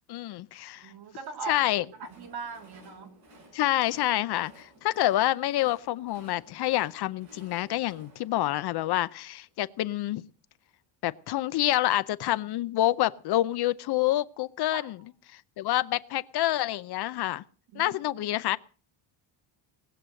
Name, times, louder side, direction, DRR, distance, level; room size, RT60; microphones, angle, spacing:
voice 1, 0.1-0.9 1.5-1.8 3.5-10.2 11.0-15.0 15.6-17.4 17.8-18.6, left 15 dB, 55° left, 0.6 m, -27 dB
voice 2, 0.8-3.1 14.7-15.0 17.7-18.2, right 4 dB, 55° right, 3.0 m, -40 dB
Train, 1.5-9.6, right 1 dB, 35° right, 6.5 m, -56 dB
19.5 x 8.0 x 7.6 m
cardioid pair, 165°, 47 cm